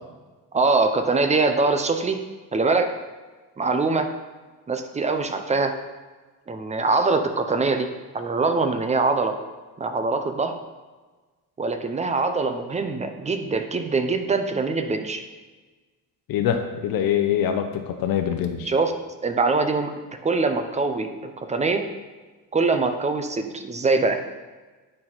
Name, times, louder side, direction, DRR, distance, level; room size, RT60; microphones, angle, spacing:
voice 1, 0.5-2.2 2.5-2.9 3.6-4.1 4.7-5.7 6.5-7.9 8.1-9.4 9.8-10.6 11.6-15.2 18.7-18.9 19.2-19.9 20.2-21.8 22.5-24.2, right 3 dB, 20° right, 7 dB, 0.5 m, -23 dB
voice 2, 16.3-18.7, left 9 dB, 90° left, 6 dB, 0.7 m, -24 dB
8.8 x 4.3 x 4.2 m, 1.3 s
cardioid pair, 140°, 34 cm